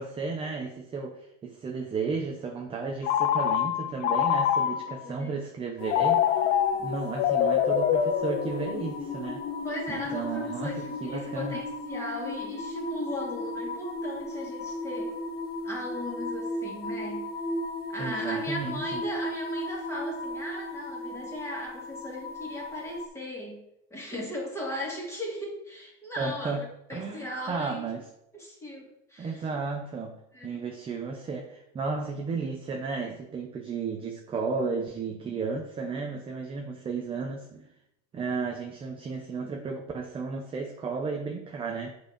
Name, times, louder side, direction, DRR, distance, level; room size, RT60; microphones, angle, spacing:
voice 1, 0.0-6.5 6.8-9.4 9.9-11.6 18.0-19.0 26.2-26.6 26.9-28.0 29.2-37.7 38.1-41.9, right 4 dB, 15° right, 2 dB, 0.6 m, -33 dB
Telephone, 3.0-5.0 5.9-8.9, left 9 dB, 75° left, 0.9 m, -25 dB
voice 2, 4.7-5.3 6.7-7.0 9.6-15.2 15.6-17.3 17.9-23.6 23.9-27.9 28.3-29.4 30.3-30.6, left 1 dB, 5° left, -3 dB, 2.3 m, -37 dB
sound 1, 5.8-23.1, left 2 dB, 25° left, 1.0 m, -35 dB
7.8 x 4.6 x 5.0 m, 0.78 s
supercardioid pair, 150°, 38 cm